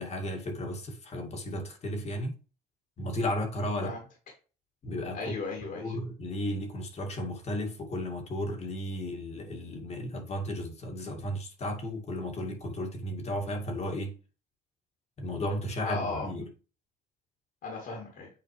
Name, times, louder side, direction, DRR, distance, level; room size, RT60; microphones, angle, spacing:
voice 1, 0.0-2.4 3.0-3.9 4.8-5.4 5.7-14.1 15.2-16.5, left 1 dB, 40° left, 2.2 m, -34 dB
voice 2, 5.1-6.0 15.8-16.3 17.6-18.3, left 3 dB, 60° left, 2.9 m, -36 dB
8.7 x 4.4 x 3.2 m
cardioid pair, 110°, 17 cm